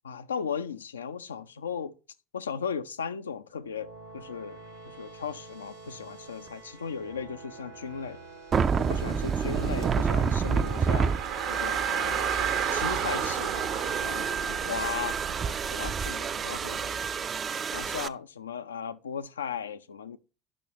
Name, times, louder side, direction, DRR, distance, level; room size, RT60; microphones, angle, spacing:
voice 1, 0.0-1.9 2.3-4.6 4.8-8.2 8.8-11.1 11.5-12.3 12.7-15.2 15.5-17.3 17.7-20.2, left 6 dB, 85° left, 0.3 m, -37 dB
sound 1, 3.5-15.8, right 3 dB, 90° right, 0.9 m, -48 dB
sound 2, 8.5-18.1, right 6 dB, 40° right, 0.4 m, -29 dB
Car, 8.6-17.1, right 8 dB, 65° right, 0.8 m, -34 dB
10.5 x 6.0 x 2.9 m
figure-of-eight pair, 65°, 0 cm